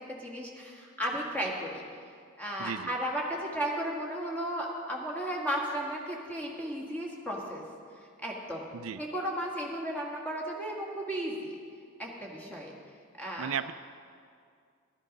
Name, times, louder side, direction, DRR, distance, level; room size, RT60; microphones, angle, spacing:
voice 1, 0.1-1.8 2.4-7.6 8.2-8.7 9.0-11.5 12.0-12.7 13.2-13.6, equal, 5° left, -3 dB, 1.8 m, -34 dB
voice 2, 2.6-2.9 8.7-9.0 13.4-13.7, right 8 dB, 80° right, 12 dB, 0.4 m, -35 dB
12.5 x 11.5 x 5.3 m, 2.2 s
head